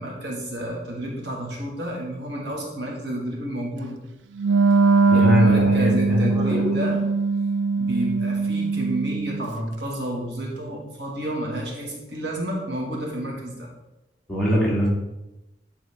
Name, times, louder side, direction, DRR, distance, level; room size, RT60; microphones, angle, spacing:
voice 1, 0.0-4.0 5.1-7.0 7.8-13.7, right 1 dB, 70° right, -1 dB, 1.5 m, -30 dB
Wind instrument woodwind instrument, 4.4-9.5, right 4 dB, 85° right, 0.5 m, -21 dB
voice 2, 5.1-6.8 14.3-14.9, left 1 dB, ahead, -7 dB, 2.0 m, -22 dB
9.5 x 3.6 x 3.5 m, 0.97 s
head